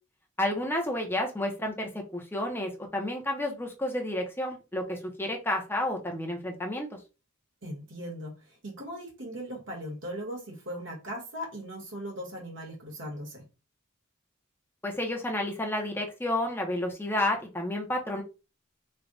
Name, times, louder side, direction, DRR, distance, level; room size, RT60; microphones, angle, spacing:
voice 1, 0.4-7.0 14.8-18.2, left 1 dB, 10° left, 0.8 m, -31 dB
voice 2, 7.6-8.4 8.6-13.5, equal, 60° right, 1.5 m, -38 dB
3.3 x 2.3 x 3.9 m
head